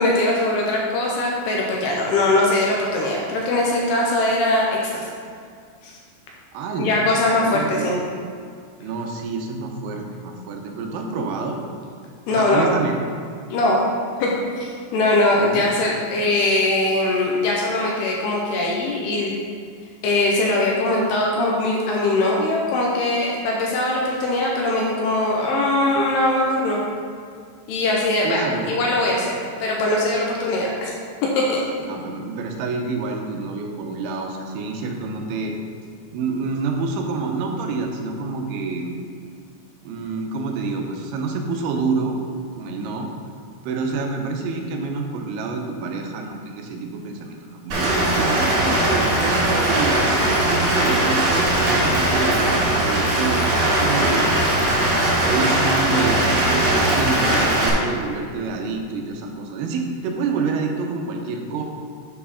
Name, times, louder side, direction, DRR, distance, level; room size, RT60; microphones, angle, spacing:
voice 1, 0.0-5.1 5.8-5.9 6.8-8.0 12.3-12.8 13.5-13.9 14.2-14.3 14.6-19.3 20.0-26.8 27.7-29.3 29.6-30.9 31.4-31.6, left 2 dB, 75° left, -2 dB, 2.6 m, -21 dB
voice 2, 6.5-7.1 7.5-7.9 8.8-11.6 12.3-13.0 15.3-15.7 28.2-28.8 31.8-35.6 36.1-38.9 39.8-42.2 42.6-43.1 43.6-50.0 50.4-54.4 55.2-61.6, right 4 dB, 85° right, 2 dB, 3.0 m, -27 dB
Rain, 47.7-57.7, right 1 dB, 60° right, 3.9 m, -20 dB
8.3 x 4.6 x 5.6 m, 2.1 s
omnidirectional pair, 5.3 m